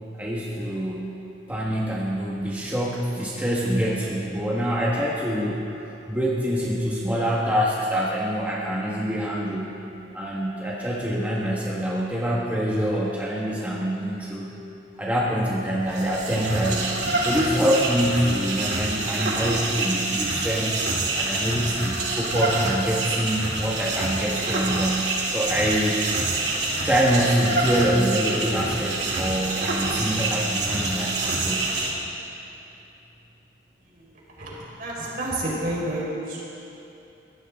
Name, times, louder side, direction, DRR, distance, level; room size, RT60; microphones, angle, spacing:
voice 1, 0.1-1.2 1.5-5.7 6.1-9.8 10.1-14.5 15.0-17.0 17.2-20.8 21.1-26.0 26.8-31.7, equal, 10° right, -5 dB, 1.5 m, -25 dB
sound 1, 15.8-31.9, right 2 dB, 80° right, 2.7 m, -26 dB
voice 2, 33.8-36.5, right 1 dB, 55° right, -5 dB, 4.6 m, -31 dB
22.5 x 16.0 x 3.7 m, 2.8 s
head